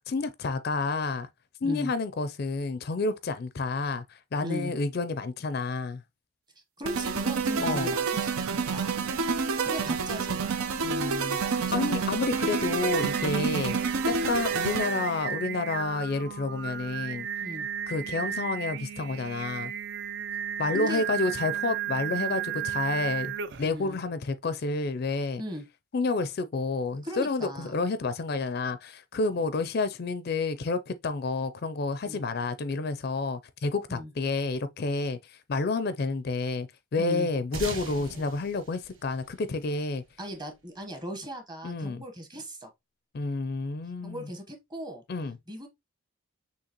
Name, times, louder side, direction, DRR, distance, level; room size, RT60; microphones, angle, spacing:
voice 1, 0.1-1.3 1.6-6.0 7.6-7.9 10.8-13.8 14.1-17.3 17.9-19.7 20.6-25.4 25.9-40.0 41.6-42.0 43.1-44.3 45.1-45.4, left 3 dB, 45° left, 0.4 m, -30 dB
voice 2, 1.6-1.9 4.4-4.7 6.8-10.5 11.6-11.9 17.4-17.7 20.7-21.0 23.6-24.0 25.4-25.6 27.0-27.8 29.3-29.4 32.0-32.2 33.9-34.1 37.0-37.3 40.2-42.7 44.0-45.0 45.5-45.7, equal, 20° right, 1.0 m, -38 dB
sound 1, 6.8-15.2, right 5 dB, 90° right, 0.7 m, -28 dB
Singing, 12.1-23.8, right 9 dB, 50° right, 0.4 m, -34 dB
sound 2, 37.5-40.3, right 3 dB, 70° right, 1.2 m, -40 dB
6.4 x 2.8 x 2.9 m
head